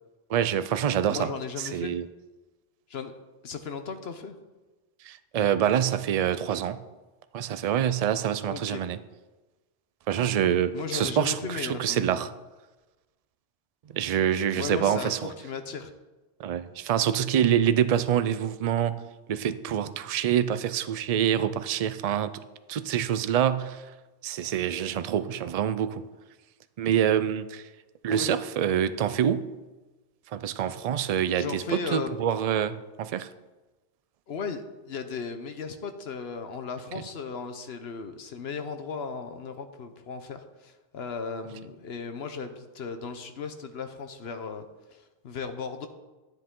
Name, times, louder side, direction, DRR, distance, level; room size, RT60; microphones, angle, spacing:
voice 1, 0.3-1.3 1.6-2.0 5.0-6.8 7.3-9.0 10.1-12.3 13.9-15.3 16.4-19.0 19.3-22.4 22.7-23.9 24.2-26.0 26.8-27.6 28.0-29.5 30.3-33.3, right 9 dB, 55° right, 12 dB, 0.4 m, -26 dB
voice 2, 1.1-2.0 2.9-3.1 3.4-4.4 8.5-8.8 10.7-12.2 14.6-15.9 28.1-28.4 31.0-32.2 34.3-44.6 44.9-45.9, left 5 dB, 65° left, 8 dB, 1.0 m, -36 dB
11.0 x 9.9 x 3.7 m, 1.2 s
omnidirectional pair, 1.2 m